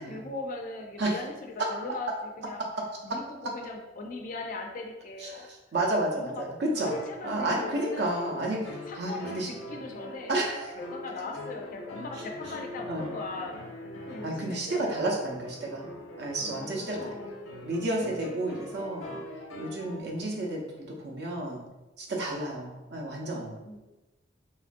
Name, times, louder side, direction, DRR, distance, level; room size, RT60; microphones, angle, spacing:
voice 1, 0.0-2.6 3.0-5.5 6.1-6.4 6.8-8.1 8.9-10.3 10.8-15.1 16.6-17.3 23.6-23.8, left 3 dB, 45° left, 2 dB, 0.3 m, -39 dB
voice 2, 5.2-6.9 7.2-9.5 10.3-10.7 12.9-13.1 14.2-15.9 16.2-17.2 17.6-19.2 19.6-21.6 22.0-23.5, right 1 dB, 60° right, -1 dB, 0.6 m, -31 dB
sound 1, 6.7-20.0, left 1 dB, 85° left, 0.6 m, -43 dB
3.0 x 2.4 x 2.5 m, 1.1 s
head